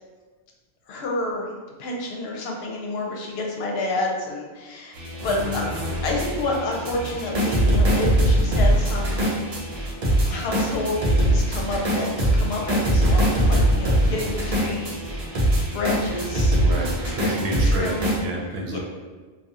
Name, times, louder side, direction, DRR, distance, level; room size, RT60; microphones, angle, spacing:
voice 1, 0.9-1.5 1.8-5.0 5.2-5.7 6.0-9.3 10.3-12.1 12.3-15.0 15.3-15.4 15.7-16.6 17.0-17.3 17.6-18.0 18.7-18.8, left 2 dB, 75° left, -1 dB, 0.8 m, -29 dB
sound 1, 4.9-18.2, right 1 dB, 50° right, 0.5 m, -22 dB
voice 2, 16.6-17.9 18.2-18.8, right 1 dB, 85° right, -1 dB, 0.8 m, -30 dB
2.7 x 2.1 x 2.3 m, 1.4 s
omnidirectional pair, 1.1 m